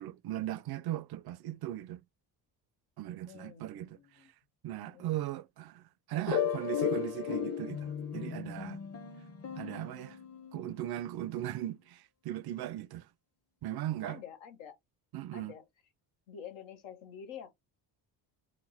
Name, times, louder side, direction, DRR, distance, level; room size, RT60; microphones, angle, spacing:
voice 1, 0.0-2.0 3.0-4.3 4.6-8.8 9.6-10.2 10.5-13.1 13.6-14.2 15.1-15.5, right 13 dB, 55° right, 0.5 m, -38 dB
voice 2, 3.3-4.3 4.8-5.1 14.0-14.8 15.3-15.6 16.3-17.5, left 8 dB, 90° left, 1.1 m, -48 dB
sound 1, 6.3-10.8, left 8 dB, 35° left, 0.8 m, -35 dB
4.2 x 2.0 x 4.1 m
cardioid pair, 85°, 45 cm